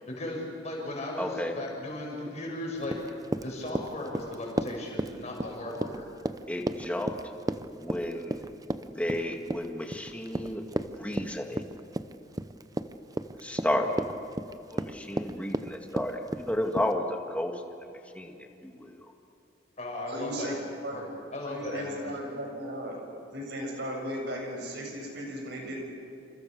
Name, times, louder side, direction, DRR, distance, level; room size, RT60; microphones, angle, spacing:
voice 1, 0.0-3.0 3.4-6.1 19.8-20.5 20.9-21.0 21.3-22.2, left 1 dB, 35° left, -1 dB, 7.2 m, -36 dB
voice 2, 1.2-1.5 6.5-7.1 7.8-8.4 8.8-11.6 13.4-14.0 14.7-17.6 18.1-18.9, left 1 dB, 5° left, 3 dB, 2.1 m, -32 dB
Run, 2.8-16.9, right 1 dB, 20° right, 0.8 m, -34 dB
voice 3, 20.1-20.5 20.8-21.1 21.4-23.0 23.3-25.8, equal, 60° right, 0 dB, 7.7 m, -36 dB
29.0 x 28.0 x 6.7 m, 2.7 s
head